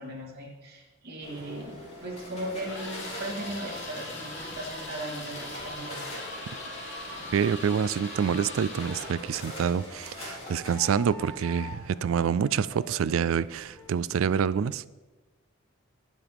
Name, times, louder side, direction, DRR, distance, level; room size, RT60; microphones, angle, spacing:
voice 1, 0.0-6.0, right 1 dB, 50° right, 3.1 m, -38 dB
sound 1, 1.2-13.9, left 1 dB, 30° left, 3.4 m, -44 dB
sound 2, 2.6-9.3, left 1 dB, 60° left, 3.0 m, -40 dB
voice 2, 7.3-14.8, right 7 dB, 80° right, 0.3 m, -27 dB
Wind instrument woodwind instrument, 8.7-14.0, left 2 dB, 15° left, 0.8 m, -47 dB
20.5 x 7.3 x 3.5 m
head